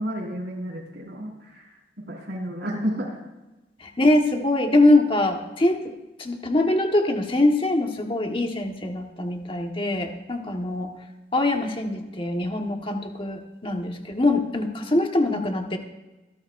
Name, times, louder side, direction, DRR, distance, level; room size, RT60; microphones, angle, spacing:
voice 1, 0.0-3.2, equal, 65° right, -2 dB, 5.2 m, -31 dB
voice 2, 3.8-5.9 6.2-10.9 11.3-15.8, left 2 dB, 30° left, 3 dB, 1.4 m, -23 dB
26.0 x 13.0 x 2.6 m, 1.1 s
head